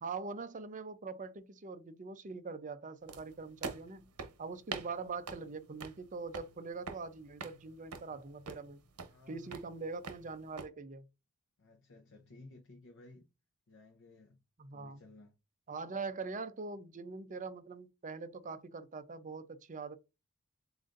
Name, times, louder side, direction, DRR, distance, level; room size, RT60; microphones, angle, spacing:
voice 1, 0.0-4.1 4.4-8.8 9.3-11.1 14.6-15.0 15.7-20.0, right 4 dB, 35° right, 0.5 m, -43 dB
sound 1, 3.1-10.7, right 4 dB, 80° right, 0.9 m, -47 dB
voice 2, 9.0-9.6 11.6-13.3 13.7-14.4 14.7-15.4, left 2 dB, 60° left, 0.7 m, -56 dB
7.7 x 2.6 x 2.5 m
head